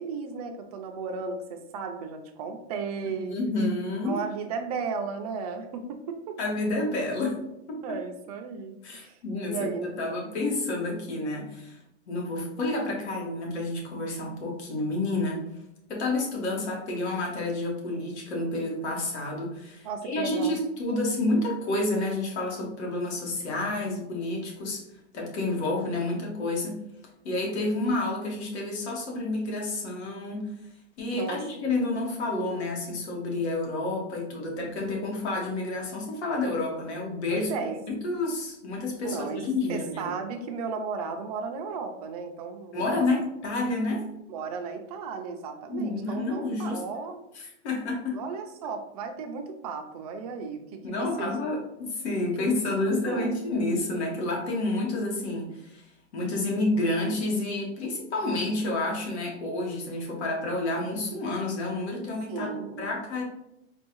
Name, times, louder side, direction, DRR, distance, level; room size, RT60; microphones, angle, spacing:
voice 1, 0.0-3.4 4.0-6.4 7.8-9.2 9.5-10.4 19.8-20.6 31.1-31.4 37.3-37.8 39.0-43.1 44.3-47.2 48.1-51.3 52.9-53.3 62.3-62.9, right 5 dB, 35° right, 5 dB, 0.4 m, -35 dB
voice 2, 3.3-4.2 6.4-7.4 7.7-8.0 8.8-9.7 10.0-11.8 12.1-15.4 15.9-24.8 25.1-26.8 27.2-30.5 31.0-37.5 37.9-40.1 42.7-44.1 45.7-46.8 47.3-48.2 50.8-55.8 56.1-62.5 62.8-63.2, left 2 dB, 70° left, -1 dB, 1.5 m, -29 dB
4.5 x 2.3 x 3.0 m, 0.84 s
supercardioid pair, 155°, 35 cm